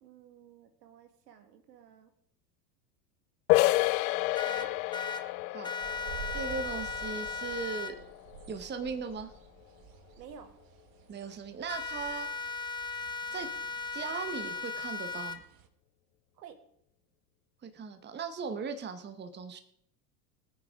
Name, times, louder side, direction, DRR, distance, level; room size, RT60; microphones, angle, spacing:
voice 1, 0.0-2.1 4.4-4.8 10.2-10.5 16.4-16.6, right 7 dB, 75° right, 7 dB, 2.1 m, -52 dB
sound 1, 3.5-9.0, left 19 dB, 55° left, 0.6 m, -30 dB
sound 2, 4.4-5.2 5.6-7.9 11.7-15.4, left 4 dB, 10° left, 0.9 m, -37 dB
sound 3, 5.8-15.7, right 7 dB, 45° right, 1.4 m, -50 dB
voice 2, 6.3-8.0 8.5-9.3 11.1-12.6 13.3-13.5 13.9-15.4 17.6-19.6, right 5 dB, 20° right, 9 dB, 1.2 m, -38 dB
20.0 x 9.3 x 3.7 m, 0.70 s
hypercardioid pair, 90°, 49 cm